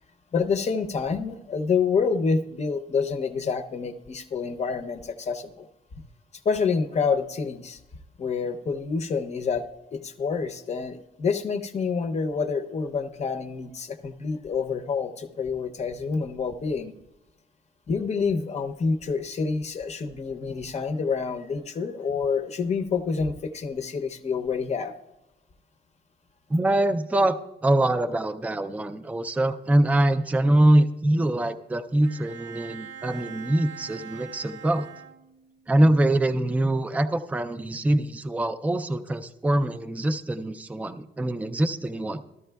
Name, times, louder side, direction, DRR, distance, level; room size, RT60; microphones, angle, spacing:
voice 1, 0.3-5.7 6.4-7.8 8.2-9.7 9.9-16.9 17.9-24.9, left 5 dB, 40° left, 7 dB, 0.7 m, -27 dB
voice 2, 26.5-27.4 27.6-34.9 35.7-42.2, right 1 dB, 10° right, 8 dB, 0.4 m, -23 dB
Bowed string instrument, 32.0-35.7, right 7 dB, 80° right, 0.5 m, -43 dB
13.5 x 13.0 x 2.3 m, 0.96 s
cardioid pair, 140°, 18 cm